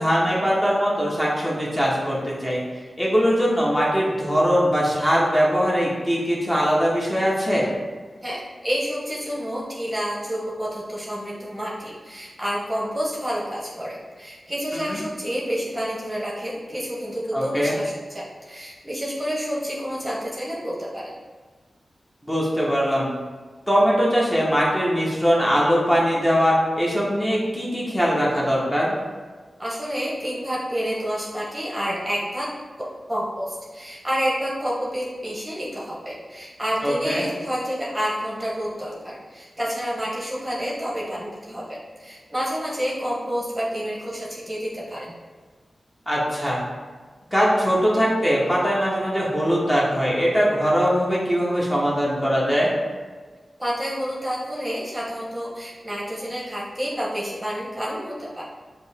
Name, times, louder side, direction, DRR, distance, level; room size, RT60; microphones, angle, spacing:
voice 1, 0.0-2.6 3.0-7.7 14.7-15.0 17.3-17.8 22.3-23.1 23.7-29.0 36.8-37.2 46.1-46.6 47.3-52.7, equal, 10° left, -6 dB, 1.0 m, -21 dB
voice 2, 8.6-21.1 29.6-32.5 33.1-45.1 53.6-58.4, equal, 20° right, -5 dB, 0.9 m, -29 dB
5.0 x 2.0 x 3.4 m, 1.4 s
cardioid pair, 60°, 0 cm